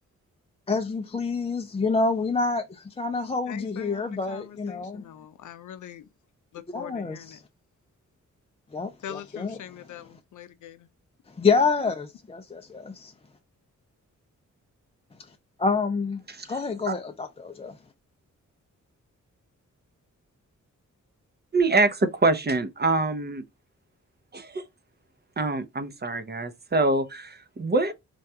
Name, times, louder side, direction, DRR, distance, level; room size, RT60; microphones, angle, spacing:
voice 1, 0.7-5.1 6.7-7.4 8.7-9.6 11.4-13.1 15.6-17.8, left 4 dB, 20° left, 0.4 m, -27 dB
voice 2, 3.5-6.1 6.5-7.4 9.0-10.9, left 10 dB, 70° left, 0.5 m, -43 dB
voice 3, 16.3-16.6 16.9-17.0 21.5-23.4 24.3-24.6 25.4-27.9, right 3 dB, 30° right, 0.6 m, -25 dB
3.3 x 2.3 x 2.7 m
cardioid pair, 65°, 31 cm